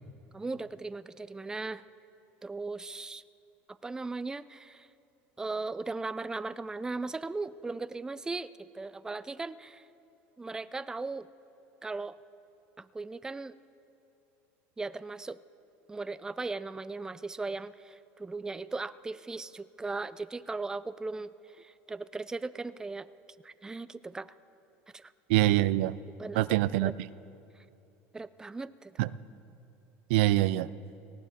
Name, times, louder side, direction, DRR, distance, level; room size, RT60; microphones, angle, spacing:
voice 1, 0.3-1.8 2.4-3.2 3.8-4.9 5.4-9.8 10.4-11.3 11.8-12.2 12.8-13.5 14.8-15.4 15.9-23.1 23.4-24.3 24.9-25.1 26.2-26.5 26.8-26.9 28.1-29.1, right 3 dB, 10° right, 15 dB, 0.4 m, -38 dB
voice 2, 25.3-25.9 26.4-27.1 29.0-29.1 30.1-30.7, right 16 dB, 85° right, 18 dB, 0.4 m, -24 dB
19.0 x 17.0 x 4.2 m, 2.9 s
supercardioid pair, 115°, 6 cm